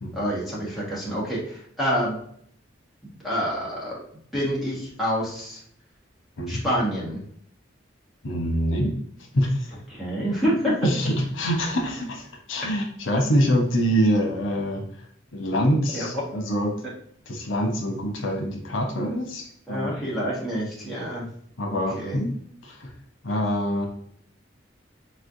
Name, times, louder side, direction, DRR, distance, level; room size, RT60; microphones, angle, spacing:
voice 1, 0.1-2.2 3.0-4.0 4.3-5.6 6.5-7.2 9.9-10.7 15.9-16.1 19.7-21.3 21.7-22.2, equal, ahead, -8 dB, 1.5 m, -27 dB
voice 2, 8.2-8.9 9.3-9.7 10.8-14.8 15.3-16.7 17.3-19.9 21.6-22.3 22.6-22.9 23.2-23.9, equal, 85° left, 1 dB, 0.9 m, -25 dB
4.2 x 3.2 x 2.6 m, 0.65 s
head